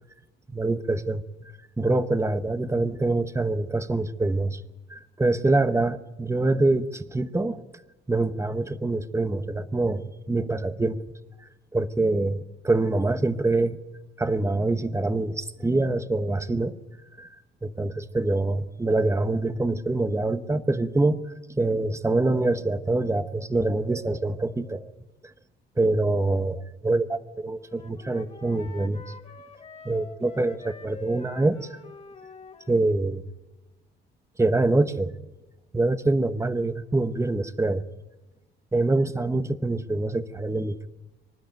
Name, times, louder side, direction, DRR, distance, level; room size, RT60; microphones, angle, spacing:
voice 1, 0.5-1.2 1.8-4.6 4.9-7.6 8.1-11.0 11.7-13.8 14.2-16.8 17.2-17.3 17.6-21.2 21.6-24.9 25.8-29.0 29.8-31.8 32.7-33.2 34.4-35.1 35.7-37.8 38.7-40.9, right 2 dB, 15° right, 11 dB, 1.1 m, -25 dB
Wind instrument woodwind instrument, 27.6-32.8, left 3 dB, 30° left, 1.9 m, -45 dB
25.0 x 12.0 x 9.0 m, 1.1 s
cardioid pair, 90°, 20 cm